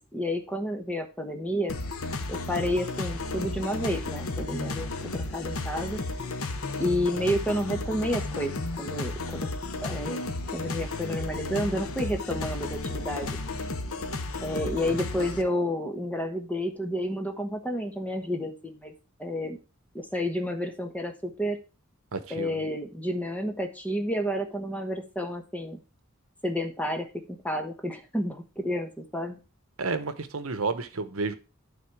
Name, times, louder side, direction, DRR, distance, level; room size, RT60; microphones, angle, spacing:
voice 1, 0.1-1.8 2.3-6.0 6.8-9.5 9.8-10.2 10.5-13.4 14.4-18.9 19.2-19.6 19.9-21.6 22.3-25.8 26.4-29.4, equal, 5° left, 5 dB, 1.1 m, -30 dB
sound 1, 1.7-15.4, left 2 dB, 85° left, 1.1 m, -33 dB
voice 2, 22.1-22.5 29.8-31.4, right 4 dB, 75° right, 11 dB, 0.9 m, -31 dB
12.0 x 4.2 x 4.8 m, 0.32 s
head